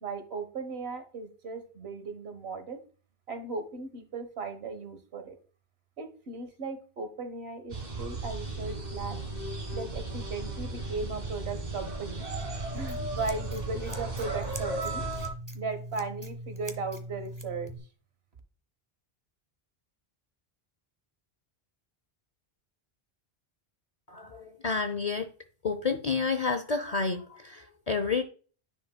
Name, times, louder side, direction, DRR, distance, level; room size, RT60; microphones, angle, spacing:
voice 1, 0.0-2.8 3.3-5.4 6.0-9.2 9.7-12.2 12.7-15.0 15.5-17.7, right 4 dB, 85° right, 9 dB, 1.5 m, -37 dB
sound 1, 7.7-15.3, right 2 dB, 45° right, 1.8 m, -35 dB
Scissors, 12.4-17.8, right 1 dB, 20° right, 1.0 m, -41 dB
voice 2, 24.1-25.3 25.6-28.2, left 4 dB, 45° left, 8 dB, 0.7 m, -30 dB
10.0 x 5.4 x 2.2 m, 0.38 s
omnidirectional pair, 1.0 m